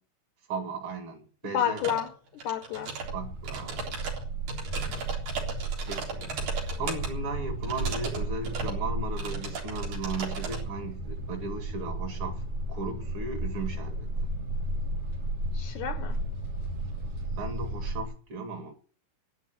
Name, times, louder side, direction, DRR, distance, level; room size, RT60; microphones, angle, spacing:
voice 1, 0.5-1.8 3.1-4.0 5.9-12.4 12.7-14.1 17.4-18.7, right 3 dB, 40° right, 2.7 m, -36 dB
voice 2, 1.5-3.0 15.5-16.2, left 10 dB, 70° left, 2.1 m, -31 dB
sound 1, 1.8-2.1 2.4-3.1 3.4-7.1 7.6-8.2 8.4-8.8 9.2-10.6, right 4 dB, 90° right, 5.5 m, -36 dB
sound 2, 3.0-18.0, right 2 dB, 60° right, 4.5 m, -34 dB
12.5 x 10.5 x 9.4 m
omnidirectional pair, 3.8 m